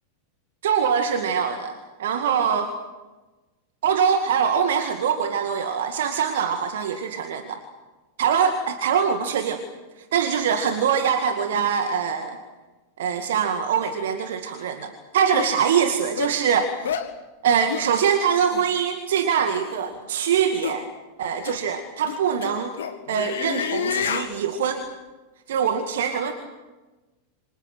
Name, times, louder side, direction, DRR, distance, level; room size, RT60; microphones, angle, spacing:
voice 1, 0.6-2.7 3.8-7.6 8.2-9.6 10.0-12.4 13.0-16.7 17.4-20.9 21.2-22.7 23.1-24.8 25.5-26.3, right 7 dB, 60° right, 6 dB, 2.2 m, -23 dB
sound 1, 14.6-14.7 15.3-15.5 16.2-16.4 16.8-17.1 17.7-17.9 18.5-18.7 19.6-19.9 20.6-20.8 21.4-21.6 22.0-24.3, left 8 dB, 60° left, 1.9 m, -29 dB
28.5 x 26.0 x 6.3 m, 1.2 s
figure-of-eight pair, 90°, 0 cm